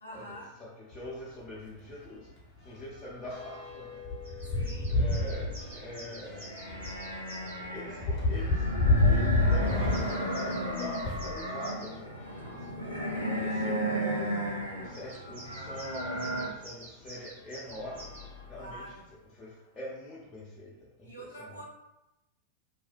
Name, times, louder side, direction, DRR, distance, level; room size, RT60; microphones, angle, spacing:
voice 1, 0.0-0.5 4.5-5.0 18.5-19.1 21.0-21.6, right 1 dB, 80° left, -3 dB, 0.5 m, -46 dB
voice 2, 0.6-2.3 2.6-6.6 7.7-8.7 9.0-12.7 12.9-14.3 14.8-18.1 18.5-18.8 19.3-21.6, left 1 dB, 20° left, -7 dB, 0.5 m, -44 dB
sound 1, 0.9-1.1 1.5-1.6 1.9-11.4 12.1-13.5 14.1-14.2 14.5-14.6 16.3-16.4 17.0-17.2 17.7-19.0, left 2 dB, 40° left, 0.9 m, -31 dB
sound 2, 3.7-3.9 4.2-7.6 9.4-12.0 14.9-18.3, right 1 dB, 65° right, 0.8 m, -49 dB
sound 3, 5.3-16.5, right 1 dB, 85° right, 0.5 m, -35 dB
2.5 x 2.0 x 2.4 m, 0.95 s
figure-of-eight pair, 90°, 0 cm